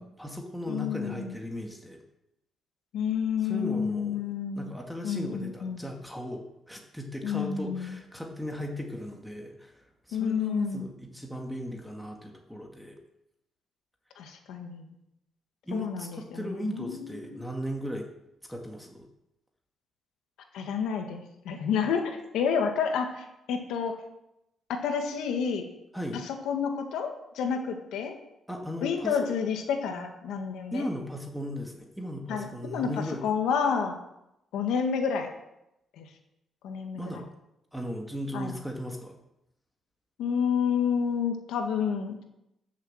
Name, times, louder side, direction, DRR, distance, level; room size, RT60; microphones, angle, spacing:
voice 1, 0.0-2.0 3.5-4.2 4.6-13.0 15.7-18.1 18.5-19.1 25.9-26.2 28.5-29.2 30.7-33.2 36.9-37.3 37.7-39.2, equal, ahead, 1 dB, 2.1 m, -37 dB
voice 2, 0.7-1.3 2.9-4.7 5.0-5.9 7.2-8.0 10.1-10.9 14.2-15.0 15.7-17.5 20.5-24.0 24.7-25.6 26.1-28.1 28.8-30.9 32.3-34.0 34.5-35.3 36.0-36.1 36.6-37.2 38.3-38.5 40.2-42.2, left 6 dB, 85° left, 4 dB, 1.9 m, -30 dB
12.5 x 7.3 x 7.4 m, 0.86 s
cardioid pair, 90°, 0 cm